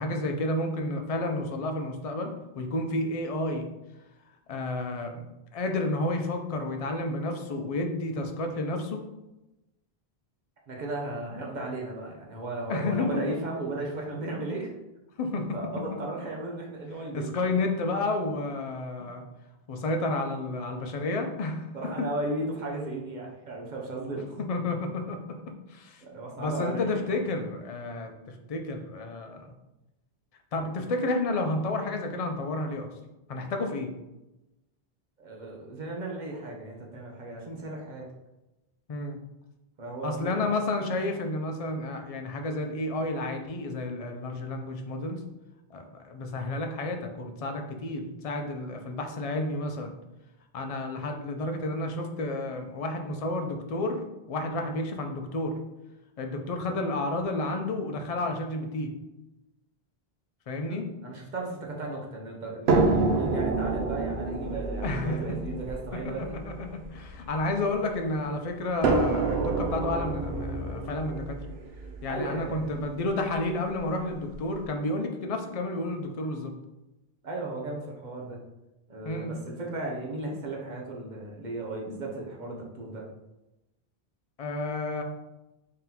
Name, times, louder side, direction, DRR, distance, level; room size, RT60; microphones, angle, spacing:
voice 1, 0.0-3.7 4.5-5.2 5.5-9.0 12.7-13.2 15.2-15.6 17.1-19.2 19.7-21.7 22.0-22.1 24.5-25.4 25.7-26.0 26.4-29.5 30.5-33.0 33.3-33.9 38.9-39.2 40.0-45.2 45.7-49.9 50.5-55.5 56.2-58.9 60.5-60.9 64.8-65.2 66.0-71.4 72.0-76.5 79.0-79.3 84.4-85.0, left 2 dB, 50° left, 5 dB, 0.5 m, -31 dB
voice 2, 10.7-14.7 15.5-17.5 21.7-24.4 26.0-26.9 35.2-38.0 39.8-40.5 60.7-66.4 72.1-72.8 77.2-78.4 78.9-83.0, right 2 dB, 50° right, -1 dB, 0.8 m, -35 dB
sound 1, 62.7-67.9 68.8-72.8 73.8-73.9 74.3-74.4, right 3 dB, 80° right, 0.8 m, -28 dB
3.8 x 3.6 x 2.8 m, 0.98 s
omnidirectional pair, 1.0 m